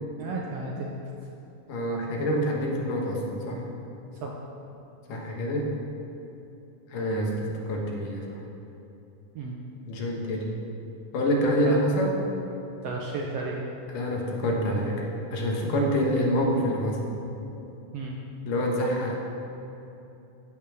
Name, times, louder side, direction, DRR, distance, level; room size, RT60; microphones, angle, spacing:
voice 1, 0.2-0.9 4.1-4.4 9.3-9.6 11.6-11.8 12.8-13.6 17.9-18.2, right 3 dB, 70° right, -1 dB, 1.6 m, -33 dB
voice 2, 1.7-3.7 5.1-5.7 6.9-8.3 9.9-10.5 11.1-12.1 13.9-17.0 18.4-19.2, equal, 75° left, -1 dB, 3.0 m, -26 dB
15.5 x 5.7 x 6.2 m, 2.9 s
omnidirectional pair, 3.8 m